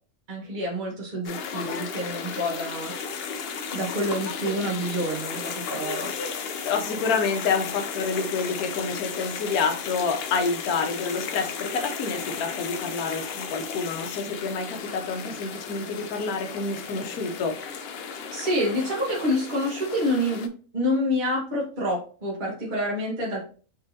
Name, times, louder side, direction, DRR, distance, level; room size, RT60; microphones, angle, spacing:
voice 1, 0.3-3.3 3.7-6.1 18.3-23.5, equal, 35° right, -4 dB, 1.4 m, -28 dB
sound 1, 1.2-20.5, left 6 dB, 70° left, 0.6 m, -34 dB
voice 2, 6.6-17.6, left 4 dB, 90° left, 5 dB, 1.2 m, -28 dB
4.1 x 3.7 x 2.7 m, 0.39 s
omnidirectional pair, 1.5 m